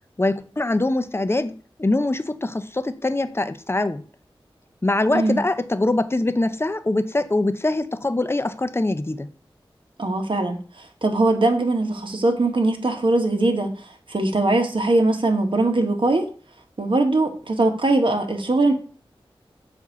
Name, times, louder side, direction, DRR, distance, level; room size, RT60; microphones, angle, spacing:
voice 1, 0.2-4.0 4.8-9.3, left 2 dB, 25° left, 0.6 m, -23 dB
voice 2, 10.0-16.3 16.8-18.7, right 2 dB, 60° right, 1.3 m, -21 dB
7.2 x 2.7 x 5.9 m
cardioid pair, 45°, 10 cm